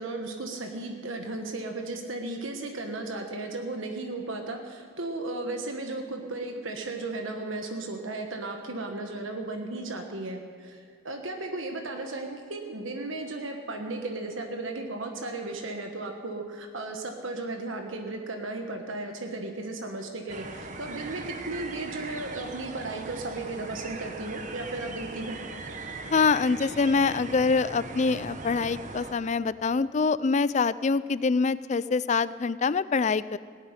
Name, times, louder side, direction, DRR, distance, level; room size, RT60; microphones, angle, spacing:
voice 1, 0.0-25.4, right 2 dB, 75° right, 3 dB, 1.3 m, -35 dB
sound 1, 20.3-29.1, right 3 dB, 35° right, 1.1 m, -40 dB
voice 2, 26.1-33.4, left 4 dB, 35° left, 17 dB, 0.3 m, -25 dB
18.0 x 8.1 x 9.7 m, 2.1 s
head